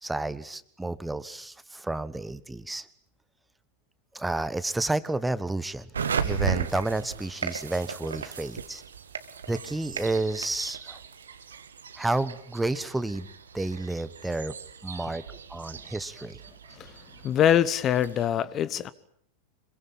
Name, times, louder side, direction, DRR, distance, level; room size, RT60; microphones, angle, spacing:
voice 1, 0.0-2.9 4.1-5.9 6.2-8.8 9.5-11.0 12.0-13.3 13.5-14.5 14.8-15.2 15.5-16.4, right 2 dB, 5° right, 16 dB, 1.2 m, -30 dB
sound 1, 5.9-18.2, right 6 dB, 70° right, 1.8 m, -36 dB
voice 2, 17.2-18.9, left 10 dB, 30° left, 18 dB, 1.1 m, -24 dB
26.5 x 23.0 x 8.8 m, 0.63 s
figure-of-eight pair, 90°, 0 cm